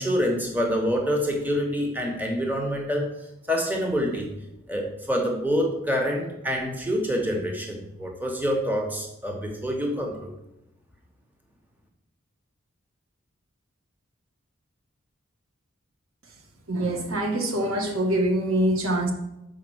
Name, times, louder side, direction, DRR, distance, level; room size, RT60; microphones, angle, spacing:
voice 1, 0.0-3.1 3.5-4.3 4.7-10.3, equal, 10° right, 2 dB, 1.0 m, -26 dB
voice 2, 16.7-19.1, right 1 dB, 85° right, 2 dB, 1.4 m, -24 dB
6.5 x 4.7 x 6.2 m, 0.91 s
head